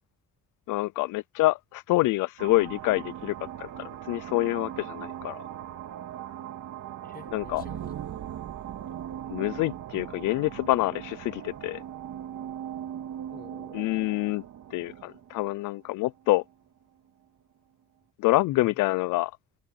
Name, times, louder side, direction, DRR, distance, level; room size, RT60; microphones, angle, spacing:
voice 1, 0.7-5.4 7.3-7.6 9.3-11.8 13.7-14.4 14.7-16.4 18.2-19.3, left 19 dB, 85° left, 0.5 m, -27 dB
sound 1, 2.4-16.5, right 10 dB, 70° right, 3.3 m, -39 dB
voice 2, 7.0-8.2 13.3-13.9 18.5-18.8, left 4 dB, 30° left, 6.0 m, -49 dB
cardioid pair, 90°, 30 cm